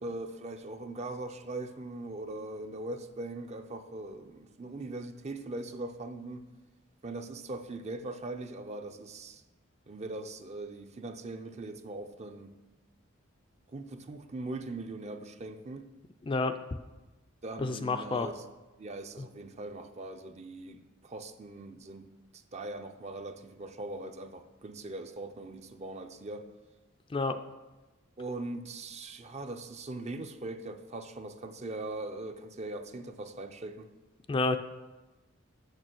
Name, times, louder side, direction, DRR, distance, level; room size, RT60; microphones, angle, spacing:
voice 1, 0.0-6.5 7.0-9.4 9.9-12.5 13.7-15.9 17.4-18.4 18.8-22.1 22.5-26.5 28.2-33.9, right 2 dB, 35° right, 8 dB, 0.5 m, -40 dB
voice 2, 16.2-16.5 17.6-18.3 19.2-19.3 27.1-27.4 34.3-34.6, left 3 dB, 25° left, 8 dB, 0.4 m, -29 dB
6.6 x 6.3 x 6.1 m, 1.1 s
head